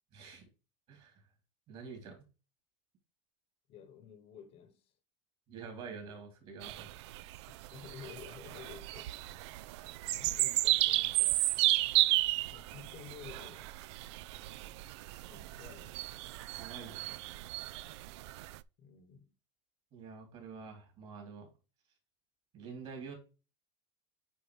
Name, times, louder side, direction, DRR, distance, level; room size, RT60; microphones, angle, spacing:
voice 1, 0.1-0.4 0.9-1.1 1.7-2.2 5.5-7.0 16.6-17.2 19.9-21.5 22.5-23.1, right 5 dB, 40° right, 3.5 m, -47 dB
voice 2, 3.7-4.9 7.7-9.5 10.1-11.5 12.5-13.7 15.3-16.0 18.8-19.3, left 7 dB, 45° left, 1.0 m, -52 dB
sound 1, 6.6-18.6, right 17 dB, 75° right, 0.4 m, -33 dB
9.1 x 3.9 x 3.2 m
supercardioid pair, 135°, 15 cm